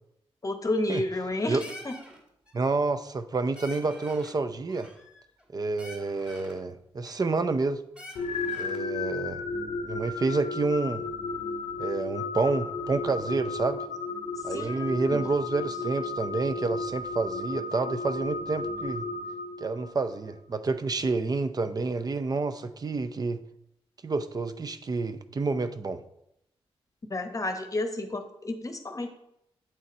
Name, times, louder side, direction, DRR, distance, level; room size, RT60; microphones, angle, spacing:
voice 1, 0.4-1.9 14.5-15.3 27.1-29.1, left 2 dB, 30° left, 6 dB, 0.9 m, -31 dB
sound 1, 0.9-1.3 1.6-2.2 2.5-2.8 3.2-3.3 3.5-4.4 4.7-5.5 5.8-6.6 7.0-7.7 7.9-8.9, left 1 dB, 10° right, 2.4 m, -47 dB
voice 2, 2.5-4.9 5.5-7.8 8.6-9.4 9.8-11.0 11.8-13.8 14.4-19.1 19.6-23.4 24.0-26.0, right 3 dB, 40° right, 11 dB, 0.6 m, -29 dB
sound 2, 8.1-20.1, left 3 dB, 80° left, 0.7 m, -34 dB
8.9 x 4.1 x 4.1 m, 0.78 s
cardioid pair, 75°, 11 cm